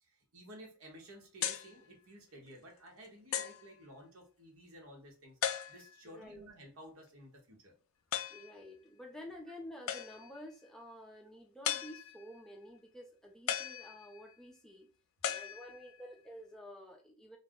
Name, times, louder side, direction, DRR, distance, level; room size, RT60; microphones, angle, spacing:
voice 1, 0.0-5.4 5.7-7.7, equal, 85° right, 1 dB, 0.9 m, -54 dB
sound 1, 1.4-1.8 2.5-2.6 3.3-3.7 5.4-6.1 8.1-8.5 9.9-10.4 11.6-12.3 13.5-14.3 15.2-16.1, left 9 dB, 70° left, 0.3 m, -37 dB
voice 2, 6.0-6.4 8.3-14.9 15.3-17.4, left 1 dB, 5° left, -1 dB, 0.4 m, -50 dB
2.4 x 2.0 x 3.5 m, 0.37 s
head